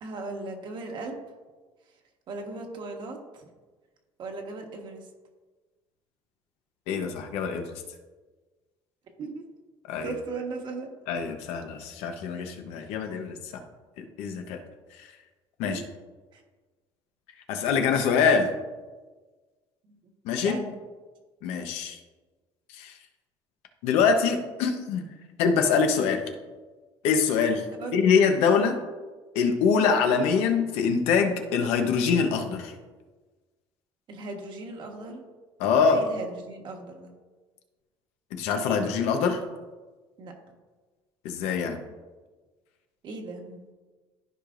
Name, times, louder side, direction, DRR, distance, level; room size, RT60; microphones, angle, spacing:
voice 1, 0.0-1.2 2.3-3.4 4.2-5.0 9.2-9.4 10.0-10.9 15.6-15.8 16.3-16.4 19.9-20.0 20.4-20.7 27.8-28.0 34.1-35.2 35.9-37.1 40.2-40.3 43.0-43.7, right 3 dB, 50° right, 2 dB, 1.4 m, -37 dB
voice 2, 6.9-7.7 9.9-10.1 11.1-13.6 14.0-14.6 15.6-15.8 17.5-18.5 20.2-20.6 21.4-22.0 22.7-23.0 23.8-25.0 25.4-26.2 27.0-27.6 27.9-28.8 29.3-32.7 35.6-36.0 38.3-39.4 41.2-41.8, left 6 dB, 85° left, 5 dB, 1.0 m, -24 dB
13.5 x 5.0 x 2.6 m, 1.3 s
cardioid pair, 135°, 10 cm